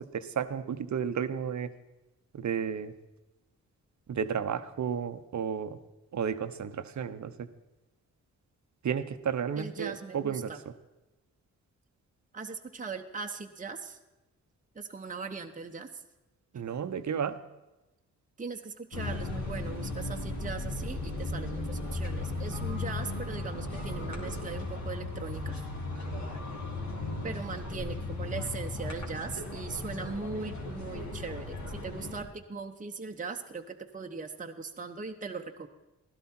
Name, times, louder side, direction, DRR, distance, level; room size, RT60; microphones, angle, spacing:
voice 1, 0.0-1.7 2.3-2.9 4.1-5.8 6.1-7.5 8.8-10.5 16.5-17.4, right 7 dB, 55° right, 11 dB, 0.9 m, -32 dB
voice 2, 9.6-10.6 12.3-14.0 14.7-16.0 18.4-25.7 27.2-35.7, right 4 dB, 20° right, 4 dB, 1.0 m, -39 dB
sound 1, 18.9-32.2, left 2 dB, 55° left, 2.9 m, -36 dB
16.0 x 12.0 x 4.4 m, 1.0 s
supercardioid pair, 45°, 35 cm